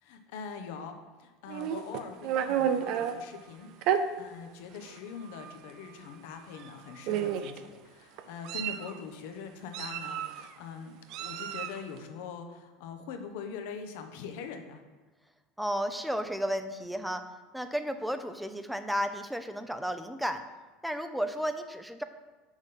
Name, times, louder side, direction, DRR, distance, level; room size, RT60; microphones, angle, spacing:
voice 1, 0.0-14.8, left 5 dB, 70° left, 6 dB, 1.0 m, -43 dB
Meow, 1.5-3.1 3.8-4.0 4.9-5.0 5.3-5.6 6.6-6.7 7.1-7.6 8.2-8.9 9.7-10.5 11.1-11.8, right 9 dB, 60° right, 0.5 m, -31 dB
voice 2, 15.6-17.2 17.5-20.4 20.8-22.0, equal, ahead, 9 dB, 0.7 m, -33 dB
7.4 x 6.3 x 3.8 m, 1.2 s
hypercardioid pair, 80°, 0 cm